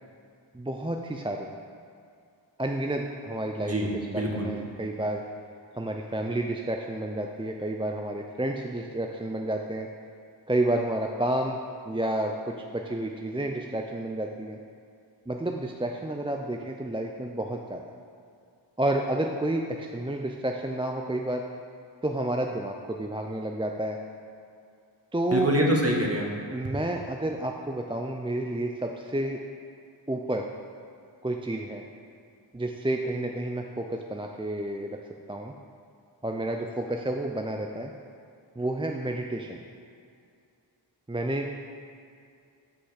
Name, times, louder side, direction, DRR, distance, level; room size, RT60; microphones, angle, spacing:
voice 1, 0.5-1.5 2.6-5.2 5.8-9.9 10.5-11.6 11.9-14.6 15.3-17.8 18.8-21.4 22.0-24.0 25.1-25.5 26.5-29.4 30.1-30.5 31.2-31.8 32.5-35.0 35.3-35.5 36.2-37.9 38.6-39.6 41.1-41.6, right 1 dB, 10° right, 2 dB, 0.4 m, -30 dB
voice 2, 3.6-4.5 25.3-26.3 26.6-26.7, equal, 35° right, -1 dB, 1.4 m, -25 dB
6.4 x 5.6 x 6.4 m, 2.4 s
wide cardioid pair, 40°, 44 cm